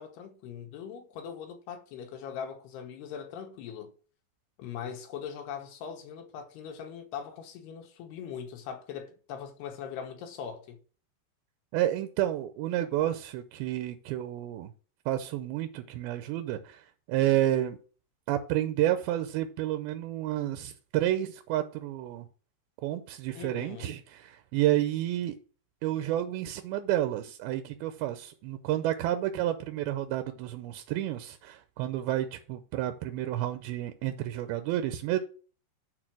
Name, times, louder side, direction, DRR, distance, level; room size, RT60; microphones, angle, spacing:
voice 1, 0.0-3.9 4.6-10.8 23.3-23.9, left 7 dB, 75° left, 3.2 m, -41 dB
voice 2, 11.7-14.7 15.1-17.8 18.3-22.3 22.8-25.4 25.8-35.2, right 13 dB, 80° right, 2.3 m, -30 dB
11.0 x 4.0 x 6.1 m
omnidirectional pair, 4.9 m